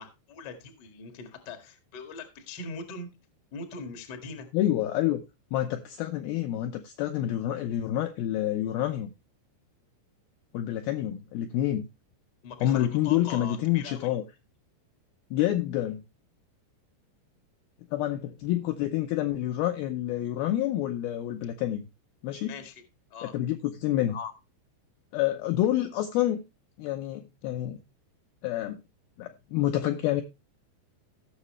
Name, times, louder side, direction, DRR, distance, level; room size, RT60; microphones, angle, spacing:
voice 1, 0.0-3.1 3.5-4.5 12.4-14.1 22.5-22.8 23.1-23.3, left 4 dB, 70° left, 1.0 m, -41 dB
voice 2, 4.5-5.2 5.5-9.1 10.5-11.9 12.6-14.2 15.3-16.0 17.9-21.8 22.2-22.5 23.3-24.3 25.1-26.4 26.8-27.8 28.4-28.8 29.2-30.2, left 13 dB, 85° left, 2.1 m, -28 dB
16.5 x 6.5 x 3.1 m
omnidirectional pair, 5.2 m